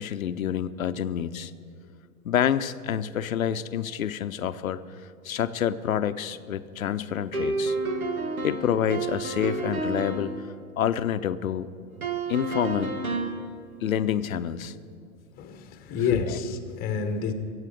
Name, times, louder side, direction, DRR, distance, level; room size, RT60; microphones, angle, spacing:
voice 1, 0.0-1.5 2.2-4.8 5.2-7.8 8.4-10.3 10.8-11.7 12.3-13.0 13.8-14.7 16.1-16.4, left 9 dB, 75° left, 0.7 m, -27 dB
sound 1, 7.3-10.3 12.0-13.4, right 3 dB, 80° right, 1.6 m, -30 dB
voice 2, 15.4-17.3, left 5 dB, 20° left, 1.1 m, -29 dB
23.0 x 8.2 x 5.0 m
figure-of-eight pair, 100°, 42 cm